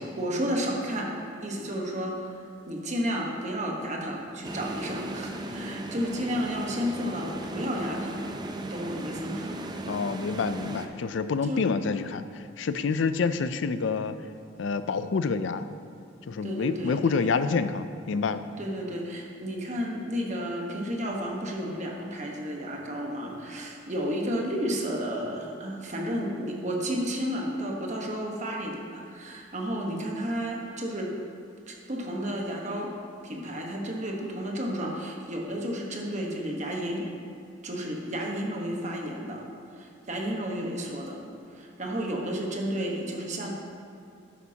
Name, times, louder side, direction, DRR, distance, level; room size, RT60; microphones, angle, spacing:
voice 1, 0.1-1.1 1.4-2.3 2.7-8.3 8.6-9.5 11.4-11.6 16.4-17.3 18.6-31.1 31.7-32.9 33.2-37.1 37.6-39.4 39.7-41.2 41.5-43.5, equal, 40° right, -1 dB, 1.2 m, -32 dB
sound 1, 4.4-10.9, right 1 dB, 20° right, 0.5 m, -37 dB
voice 2, 9.9-14.2 14.6-15.7 16.3-18.4, left 5 dB, 70° left, 12 dB, 0.4 m, -28 dB
11.5 x 8.4 x 2.8 m, 2.5 s
head